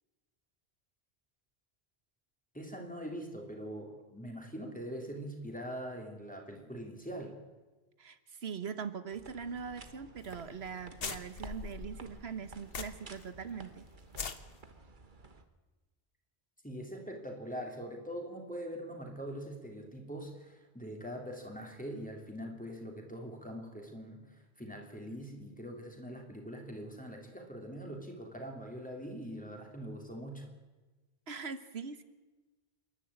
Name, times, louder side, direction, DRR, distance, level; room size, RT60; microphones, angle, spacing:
voice 1, 2.5-7.3 16.6-30.5, equal, 10° left, 2 dB, 3.3 m, -43 dB
voice 2, 8.0-13.8 31.3-32.0, right 6 dB, 80° right, 12 dB, 1.5 m, -41 dB
sound 1, 9.1-15.4, right 3 dB, 50° right, 1.5 m, -53 dB
sound 2, 10.2-10.4 10.6-10.7 11.0-13.2 13.5-13.6 14.0-14.4, left 5 dB, 65° left, 1.3 m, -41 dB
28.0 x 11.5 x 8.7 m, 1.2 s
omnidirectional pair, 1.1 m